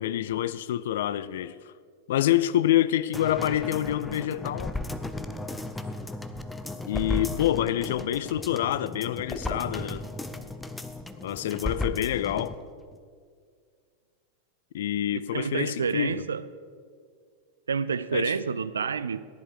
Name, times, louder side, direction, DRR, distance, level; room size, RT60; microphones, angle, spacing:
voice 1, 0.0-1.7 2.1-4.7 6.9-10.1 11.2-12.6 14.7-16.2 18.1-18.3, left 12 dB, 55° left, 0.4 m, -27 dB
sound 1, 3.1-12.6 12.9-13.0, left 1 dB, 5° left, 0.7 m, -35 dB
voice 2, 15.1-16.5 17.7-19.2, right 6 dB, 70° right, 0.4 m, -29 dB
15.0 x 10.5 x 4.8 m
figure-of-eight pair, 90°, 0 cm